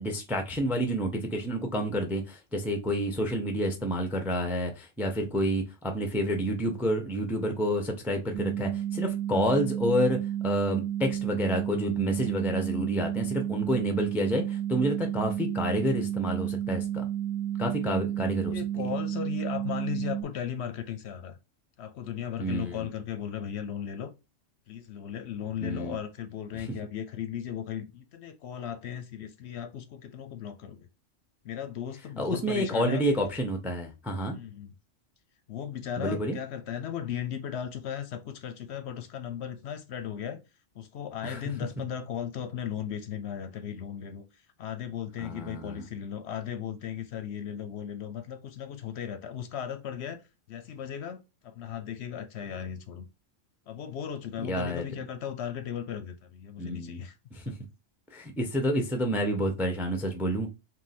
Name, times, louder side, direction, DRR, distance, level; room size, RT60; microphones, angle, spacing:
voice 1, 0.0-17.0 17.6-18.6 22.4-22.9 25.6-26.0 26.6-26.7 32.2-34.4 36.0-36.4 41.2-41.4 45.2-45.8 54.5-54.9 56.6-57.0 57.3-57.4 58.1-60.5, equal, ahead, 0.4 m, -29 dB
sound 1, 8.3-20.2, right 11 dB, 65° right, 0.9 m, -31 dB
voice 2, 18.5-21.4 21.8-24.1 24.7-30.9 31.4-33.0 34.3-34.7 35.5-40.4 40.7-44.2 44.6-53.1 53.7-57.2 57.5-57.6, left 9 dB, 65° left, 0.8 m, -36 dB
3.8 x 2.6 x 4.1 m
omnidirectional pair, 1.3 m